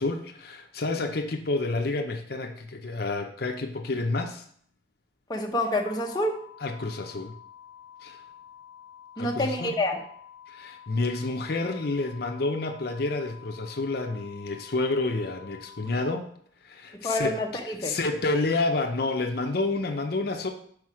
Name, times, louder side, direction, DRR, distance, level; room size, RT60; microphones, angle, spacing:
voice 1, 0.0-4.4 6.6-7.3 8.0-8.2 9.2-9.7 10.5-16.3 16.6-17.3 17.8-20.5, left 3 dB, 55° left, 4 dB, 0.6 m, -29 dB
voice 2, 5.3-6.3 9.2-10.0 17.0-17.9, left 1 dB, 20° left, 1 dB, 0.8 m, -27 dB
sound 1, 5.9-15.9, left 9 dB, 25° right, 0.5 m, -49 dB
6.0 x 4.9 x 4.8 m, 0.62 s
head